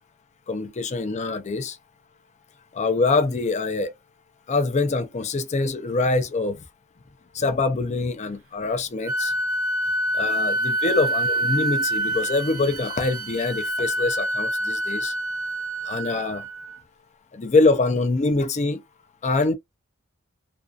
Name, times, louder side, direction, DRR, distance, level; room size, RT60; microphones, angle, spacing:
voice 1, 0.5-1.8 2.7-3.9 4.5-6.6 7.3-9.3 10.1-15.1 15.8-16.5 17.3-18.8 19.2-19.5, left 3 dB, 35° left, 0.5 m, -24 dB
Wind instrument woodwind instrument, 9.0-16.8, right 1 dB, 75° right, 0.7 m, -26 dB
2.5 x 2.4 x 2.3 m
head